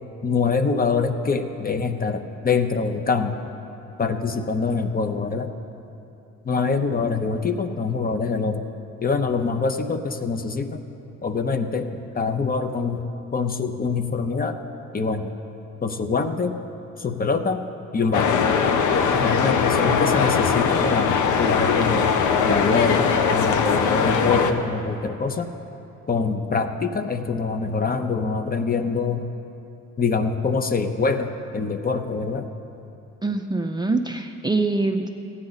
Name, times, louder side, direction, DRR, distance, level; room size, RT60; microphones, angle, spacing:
voice 1, 0.2-3.5 4.0-5.5 6.4-8.6 9.0-10.9 11.2-13.0 13.3-14.6 14.9-15.3 15.8-16.6 17.0-17.7 17.9-18.4 19.1-22.1 22.5-25.5 26.1-29.3 30.0-32.5, left 4 dB, 30° left, 7 dB, 0.7 m, -24 dB
sound 1, 18.1-24.5, left 6 dB, 80° left, 0.8 m, -21 dB
voice 2, 33.2-35.1, right 3 dB, 15° right, 4 dB, 0.4 m, -24 dB
15.0 x 9.7 x 4.0 m, 2.8 s
cardioid pair, 90°, 30 cm